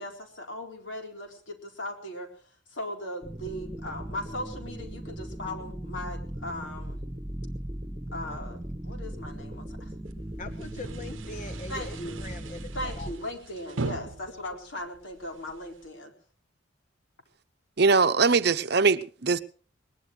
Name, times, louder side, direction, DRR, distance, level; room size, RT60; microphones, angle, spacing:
voice 1, 0.0-2.3 2.7-7.0 8.1-9.9 11.7-12.2 12.7-16.1, left 1 dB, 80° left, 4.1 m, -38 dB
sound 1, 3.2-13.1, right 1 dB, 15° right, 1.5 m, -38 dB
sound 2, 10.1-15.9, right 3 dB, 85° right, 0.8 m, -40 dB
voice 2, 10.4-13.1, left 2 dB, 40° left, 0.9 m, -42 dB
sound 3, 13.1-13.9, equal, 55° left, 2.5 m, -54 dB
voice 3, 17.8-19.4, right 4 dB, 55° right, 0.7 m, -21 dB
21.0 x 20.0 x 3.3 m
head